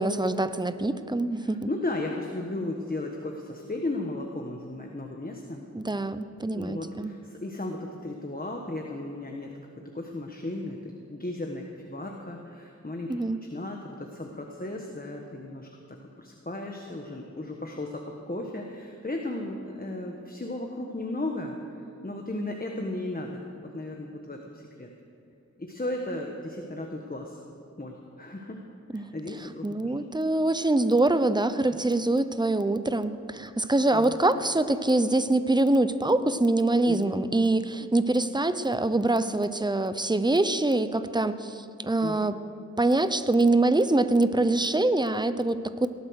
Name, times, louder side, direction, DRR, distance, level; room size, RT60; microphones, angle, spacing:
voice 1, 0.0-1.7 5.7-7.1 13.1-13.4 28.9-29.1 29.6-42.3 42.8-45.9, right 2 dB, 15° right, 12 dB, 0.7 m, -24 dB
voice 2, 1.4-5.6 6.5-9.5 9.9-21.6 22.0-23.4 23.7-24.9 25.6-27.4 27.8-28.6 28.9-29.9 31.7-31.8 33.9-34.2 36.8-37.2 42.0-42.3, left 2 dB, 30° left, 1 dB, 1.4 m, -35 dB
18.0 x 11.5 x 6.4 m, 2.6 s
wide cardioid pair, 55°, 29 cm